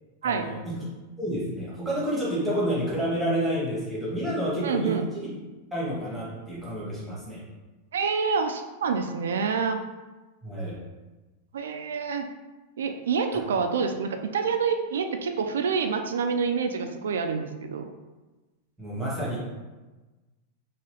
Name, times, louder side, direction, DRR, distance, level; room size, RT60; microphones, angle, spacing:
voice 1, 0.2-0.8 1.2-5.3 5.7-7.4 10.4-10.8 18.8-19.4, equal, 5° right, -8 dB, 1.1 m, -29 dB
voice 2, 4.6-5.0 7.9-9.8 11.5-12.2 12.8-17.9, right 5 dB, 85° right, 6 dB, 0.3 m, -27 dB
2.9 x 2.3 x 3.0 m, 1.2 s
hypercardioid pair, 125°, 0 cm